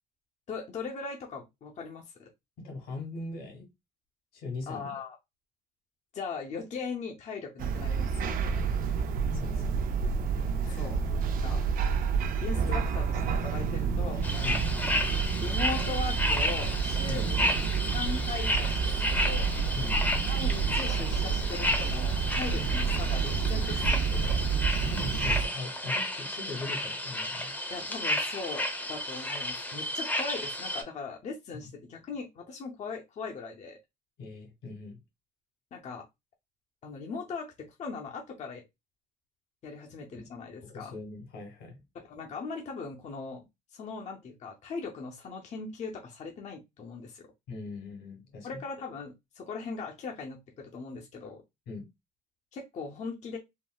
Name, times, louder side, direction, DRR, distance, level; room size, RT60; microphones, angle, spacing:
voice 1, 0.5-2.3 4.7-5.2 6.1-8.3 10.7-11.7 12.4-14.6 15.4-17.6 17.9-19.5 20.3-24.5 27.7-33.8 35.7-36.1 36.8-38.6 39.6-40.9 41.9-47.3 48.4-51.4 52.5-53.4, left 4 dB, 45° left, 0.6 m, -39 dB
voice 2, 2.6-3.7 4.3-4.9 9.3-9.6 10.6-10.9 14.4-14.6 17.1-17.2 19.7-20.0 22.6-22.7 24.1-24.5 24.8-27.5 34.2-35.0 40.6-41.8 47.5-48.5 51.7-51.9, left 3 dB, 85° left, 1.8 m, -40 dB
sound 1, 7.6-25.4, right 6 dB, 55° right, 0.5 m, -29 dB
sound 2, 14.2-30.8, left 1 dB, 10° left, 0.7 m, -32 dB
3.6 x 2.0 x 2.2 m
cardioid pair, 110°, 17 cm